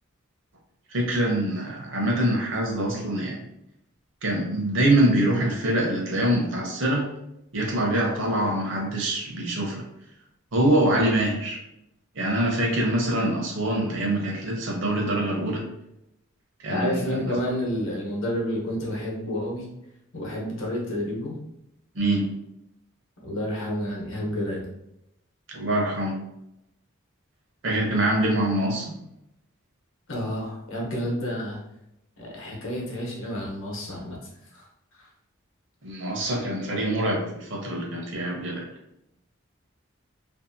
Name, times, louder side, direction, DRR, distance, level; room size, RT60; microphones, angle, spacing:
voice 1, 0.9-3.4 4.2-7.1 7.5-9.8 10.5-11.6 12.2-15.6 16.6-17.3 21.9-22.3 25.5-26.2 27.6-29.0 35.8-38.6, right 1 dB, 60° right, 0 dB, 0.7 m, -24 dB
voice 2, 16.7-19.7 20.1-21.3 23.2-24.6 30.1-31.6 32.2-34.2 34.5-34.7 34.9-35.1, equal, 65° left, -2 dB, 0.8 m, -30 dB
2.6 x 2.4 x 2.6 m, 0.82 s
head